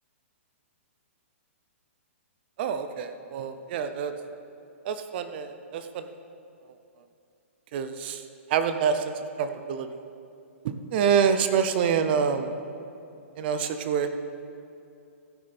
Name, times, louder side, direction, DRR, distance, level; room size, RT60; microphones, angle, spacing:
voice 1, 2.6-4.1 4.8-6.1 7.7-8.2 8.5-9.9 10.6-12.5 13.4-14.1, right 7 dB, 45° right, 9 dB, 0.6 m, -26 dB
15.0 x 6.3 x 4.2 m, 2.6 s
hypercardioid pair, 140°, 7 cm